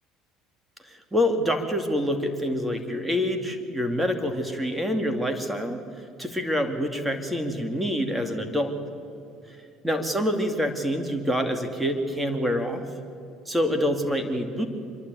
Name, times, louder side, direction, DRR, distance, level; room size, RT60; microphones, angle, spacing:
voice 1, 0.8-5.8 6.2-8.8 9.5-9.6 9.8-12.8 13.5-14.7, equal, 10° right, 6 dB, 2.5 m, -26 dB
26.0 x 11.5 x 9.2 m, 2.6 s
supercardioid pair, 80°, 0 cm